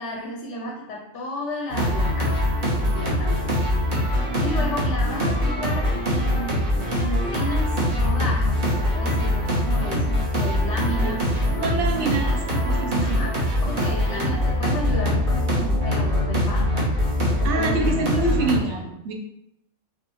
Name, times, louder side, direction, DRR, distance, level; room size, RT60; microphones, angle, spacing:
voice 1, 0.0-3.6 4.0-11.3 11.7-12.2 13.0-17.0 17.4-18.0 18.3-19.0, left 1 dB, 60° left, -1 dB, 0.9 m, -33 dB
sound 1, 1.7-18.6, equal, 35° right, 1.3 m, -23 dB
voice 2, 11.5-13.2 17.4-19.1, right 3 dB, 60° right, 2 dB, 1.0 m, -26 dB
5.6 x 2.5 x 3.0 m, 0.80 s
omnidirectional pair, 1.5 m